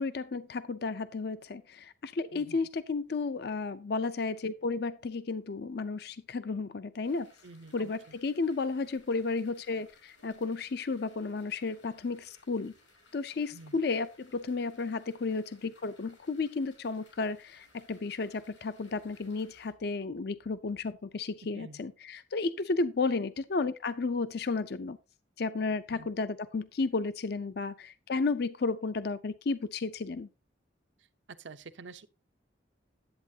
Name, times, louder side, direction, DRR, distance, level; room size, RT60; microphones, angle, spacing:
voice 1, 0.0-7.3 7.7-12.7 13.1-25.0 25.4-30.3, left 3 dB, 55° left, 0.5 m, -33 dB
voice 2, 2.3-2.7 7.4-8.2 13.5-13.8 21.5-21.8 25.9-26.1 31.4-32.1, right 3 dB, 80° right, 0.8 m, -48 dB
sound 1, 7.0-19.7, left 2 dB, 85° left, 6.5 m, -63 dB
10.5 x 8.3 x 2.7 m
head